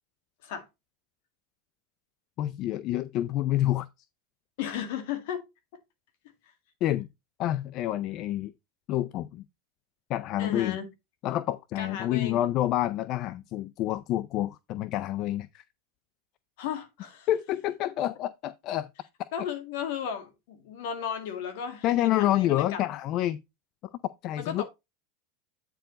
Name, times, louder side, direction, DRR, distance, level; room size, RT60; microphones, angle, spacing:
voice 1, 2.4-3.9 6.8-7.1 7.4-8.5 8.9-9.4 10.1-10.8 11.2-15.6 17.3-18.9 21.8-23.4 24.2-24.6, left 13 dB, 50° left, 0.4 m, -28 dB
voice 2, 4.6-5.4 10.4-10.9 11.8-12.4 16.6-17.3 19.3-22.8 24.4-24.6, left 8 dB, 70° left, 1.9 m, -34 dB
9.0 x 4.5 x 3.9 m
hypercardioid pair, 105°, 0 cm